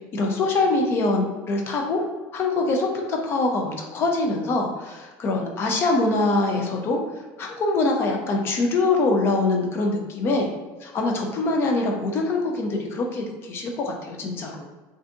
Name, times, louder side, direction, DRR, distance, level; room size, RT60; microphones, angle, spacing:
voice 1, 0.1-2.0 2.3-7.0 7.4-10.5 10.8-14.7, left 2 dB, 30° left, 2 dB, 0.5 m, -24 dB
2.6 x 2.5 x 3.5 m, 1.3 s
cardioid pair, 170°, 8 cm